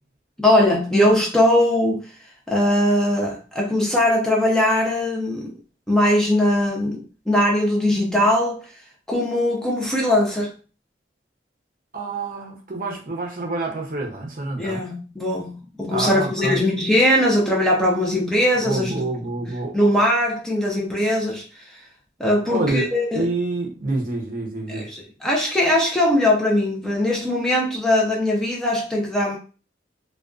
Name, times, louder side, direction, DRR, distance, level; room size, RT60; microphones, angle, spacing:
voice 1, 0.4-2.2 2.5-5.5 5.9-8.8 9.1-10.5 14.6-18.9 19.4-19.5 19.7-21.8 22.2-23.3 24.7-29.4, left 1 dB, 5° left, 0.5 m, -20 dB
voice 2, 11.9-14.9 15.9-16.6 18.6-19.8 22.5-22.9 23.1-24.9, right 2 dB, 50° right, 0.6 m, -27 dB
2.4 x 2.2 x 2.3 m
head